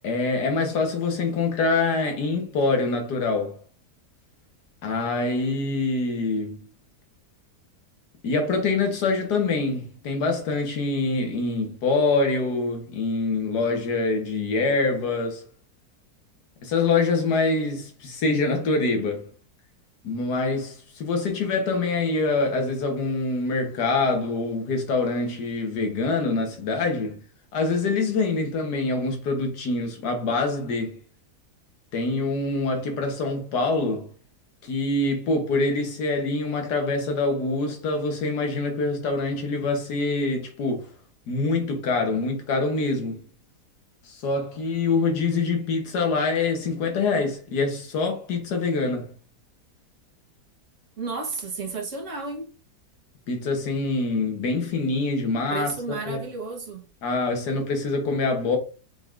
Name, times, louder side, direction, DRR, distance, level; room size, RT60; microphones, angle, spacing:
voice 1, 0.0-3.6 4.8-6.7 8.2-15.4 16.6-19.3 20.0-27.2 27.5-31.0 31.9-34.1 34.6-40.9 41.3-43.2 44.1-49.1 53.3-56.2 57.0-58.6, left 3 dB, 75° left, 1.7 m, -25 dB
voice 2, 51.0-52.4 55.5-56.8, right 4 dB, 50° right, 1.5 m, -32 dB
5.8 x 3.6 x 2.5 m
omnidirectional pair, 1.7 m